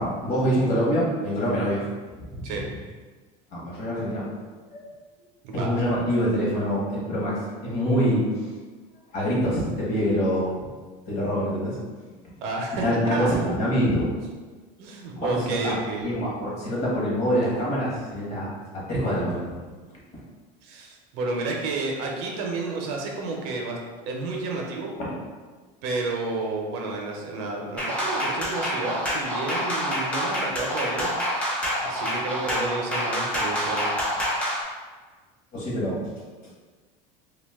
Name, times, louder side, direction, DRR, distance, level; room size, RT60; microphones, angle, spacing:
voice 1, 0.0-1.8 2.3-2.5 3.5-4.3 4.7-4.8 5.5-8.5 9.1-10.7 11.0-11.8 12.7-14.1 15.2-19.5 35.5-36.0, equal, 40° left, -5 dB, 0.9 m, -25 dB
voice 2, 12.4-13.3 14.8-16.3 20.6-23.8 24.1-25.0 25.8-34.0, right 3 dB, 60° right, 0 dB, 0.5 m, -31 dB
sound 1, 27.8-34.6, equal, 5° left, 0.4 m, -27 dB
2.4 x 2.2 x 3.4 m, 1.4 s
cardioid pair, 175°, 18 cm